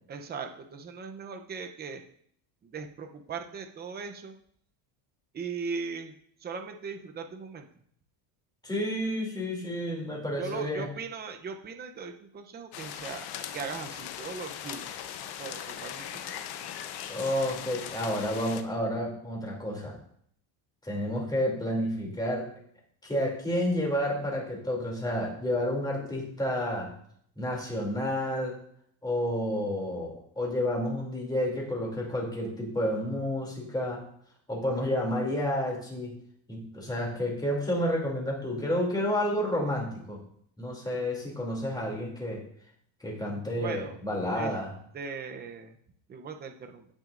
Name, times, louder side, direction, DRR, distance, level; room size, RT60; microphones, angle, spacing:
voice 1, 0.1-2.0 2.6-4.3 5.3-6.1 6.4-7.7 10.4-13.2 13.5-14.9 15.4-16.4 43.6-44.0 44.3-44.6 44.9-45.8 46.1-46.9, right 5 dB, 20° right, 6 dB, 0.6 m, -39 dB
voice 2, 8.6-10.9 17.1-20.0 20.8-22.5 23.0-26.9 27.4-28.6 29.0-34.0 34.5-36.2 36.5-40.2 40.6-42.4 43.0-44.7, left 1 dB, 10° left, -2 dB, 2.7 m, -30 dB
sound 1, 12.7-18.6, left 10 dB, 55° left, 0.9 m, -39 dB
16.0 x 6.3 x 2.5 m, 0.65 s
cardioid pair, 145°, 48 cm